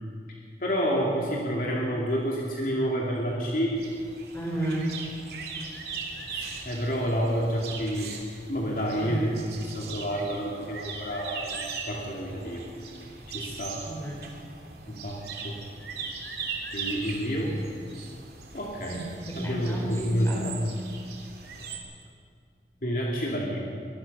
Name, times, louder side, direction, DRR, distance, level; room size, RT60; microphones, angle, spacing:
voice 1, 0.6-3.8 6.3-8.1 8.5-9.3 9.7-12.7 13.3-13.8 14.9-15.6 16.7-17.6 18.5-19.1 19.3-20.6 22.8-23.6, equal, 50° left, -3 dB, 2.9 m, -29 dB
sound 1, 3.8-21.8, right 5 dB, 65° right, 2.9 m, -40 dB
voice 2, 4.3-4.9 9.0-9.2 13.8-14.3 18.9-20.5, right 1 dB, 15° left, -4 dB, 4.9 m, -32 dB
24.0 x 19.5 x 5.6 m, 2.2 s
head